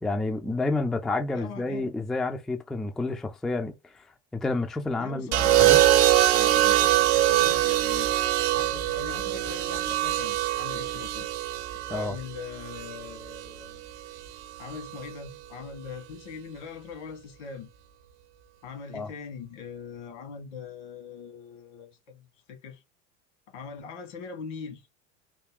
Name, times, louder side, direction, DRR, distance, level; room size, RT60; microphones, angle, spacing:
voice 1, 0.0-4.1 4.4-5.3 5.6-5.8 11.9-12.2 18.9-19.1, left 2 dB, ahead, 0.3 m, -29 dB
voice 2, 1.3-1.9 5.0-8.1 8.5-11.3 11.9-13.8 14.6-17.7 18.6-22.8 23.5-24.9, left 6 dB, 75° left, 1.9 m, -41 dB
sound 1, 5.3-13.5 14.7-15.1, right 14 dB, 65° right, 0.7 m, -23 dB
3.4 x 2.3 x 3.6 m
hypercardioid pair, 95°, 36 cm